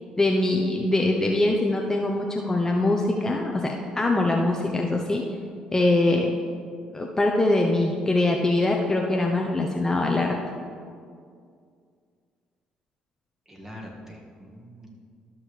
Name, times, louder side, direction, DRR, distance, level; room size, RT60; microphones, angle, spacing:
voice 1, 0.2-5.2 5.7-6.4 6.9-10.4, left 2 dB, 20° left, 0 dB, 0.8 m, -23 dB
voice 2, 13.5-14.9, equal, 15° right, -1 dB, 1.9 m, -43 dB
13.0 x 6.1 x 3.3 m, 2.2 s
supercardioid pair, 65°, 3 cm